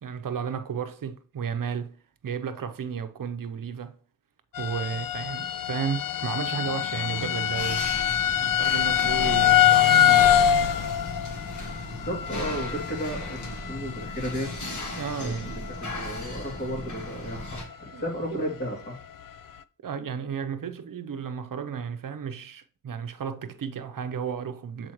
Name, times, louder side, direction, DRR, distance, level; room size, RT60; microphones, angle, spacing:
voice 1, 0.0-4.0 4.6-7.9 8.4-10.5 15.0-15.6 17.9-18.4 19.8-24.9, right 7 dB, 85° right, 0.7 m, -33 dB
sound 1, 4.5-15.2 15.5-16.0 16.5-16.6 17.0-17.1, left 11 dB, 90° left, 0.5 m, -24 dB
sound 2, 7.5-17.6, left 1 dB, 65° left, 1.9 m, -36 dB
voice 2, 11.6-14.5 15.2-19.0, equal, 30° left, 2.7 m, -34 dB
7.7 x 4.3 x 3.0 m
wide cardioid pair, 105°, 32 cm